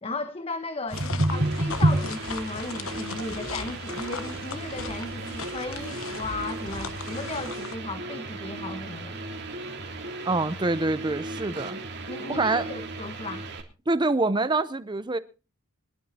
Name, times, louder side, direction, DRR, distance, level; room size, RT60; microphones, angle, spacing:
voice 1, 0.0-9.2 12.1-13.5, left 2 dB, 25° left, 1.1 m, -35 dB
sound 1, 0.9-7.7, left 5 dB, 75° left, 1.2 m, -38 dB
sound 2, 0.9-7.5, right 1 dB, 80° right, 3.0 m, -30 dB
sound 3, 1.3-13.6, right 2 dB, 50° right, 3.4 m, -37 dB
voice 2, 10.3-11.8 12.3-12.7 13.9-15.2, right 2 dB, 20° right, 0.6 m, -25 dB
24.5 x 12.0 x 2.8 m
head